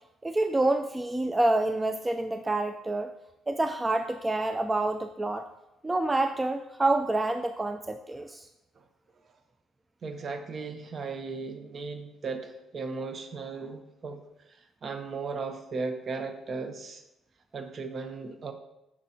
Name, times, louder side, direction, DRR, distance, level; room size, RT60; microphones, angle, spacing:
voice 1, 0.2-3.1 3.5-5.5 5.8-8.5, right 2 dB, 15° right, 7 dB, 0.3 m, -27 dB
voice 2, 10.0-14.2 14.5-17.0 17.5-18.5, right 4 dB, 45° right, 7 dB, 0.8 m, -36 dB
7.2 x 6.1 x 2.8 m, 0.89 s
cardioid pair, 80°, 0 cm